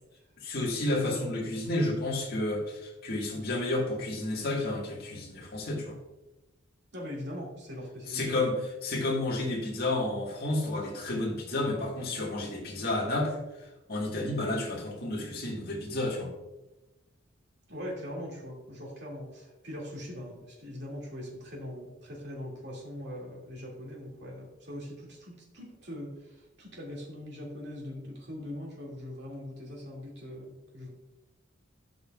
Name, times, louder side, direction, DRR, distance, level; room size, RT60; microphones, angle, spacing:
voice 1, 0.4-5.9 8.1-8.5 8.8-16.3, left 2 dB, 50° left, -3 dB, 1.8 m, -31 dB
voice 2, 6.9-8.4 17.7-30.9, left 1 dB, 55° right, -2 dB, 2.3 m, -41 dB
13.0 x 5.4 x 2.4 m, 1.0 s
head